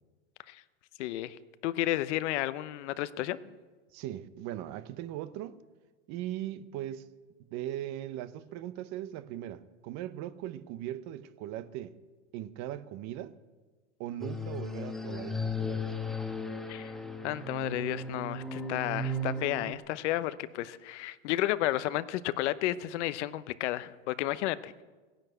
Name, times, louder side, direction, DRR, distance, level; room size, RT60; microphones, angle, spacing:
voice 1, 1.0-1.4 1.6-3.4 16.7-16.9 17.2-24.8, left 14 dB, 65° left, 0.9 m, -32 dB
voice 2, 3.9-5.6 6.1-7.1 7.5-12.0 12.3-13.3 14.0-16.0, right 12 dB, 45° right, 1.0 m, -39 dB
sound 1, 14.2-19.7, left 1 dB, ahead, 1.3 m, -36 dB
17.0 x 10.5 x 8.0 m
hypercardioid pair, 115°, 38 cm